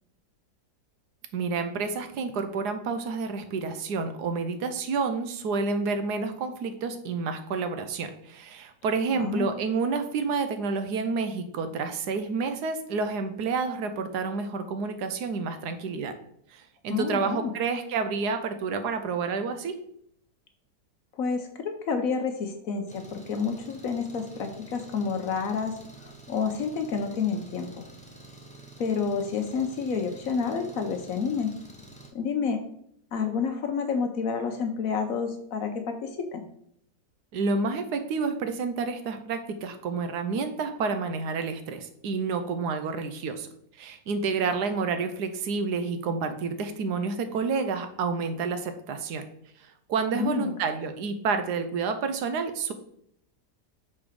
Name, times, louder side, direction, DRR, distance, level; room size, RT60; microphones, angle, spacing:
voice 1, 1.3-16.1 16.5-19.7 37.3-43.5 43.8-49.2 49.9-52.7, right 4 dB, 75° right, 8 dB, 1.2 m, -29 dB
voice 2, 9.1-9.5 16.9-17.5 21.1-27.8 28.8-31.5 32.1-32.6 33.1-36.4 50.1-50.5, left 5 dB, 65° left, 6 dB, 1.0 m, -29 dB
Engine, 22.9-32.1, right 1 dB, 10° left, 0.4 m, -49 dB
5.7 x 4.3 x 4.9 m, 0.68 s
omnidirectional pair, 1.8 m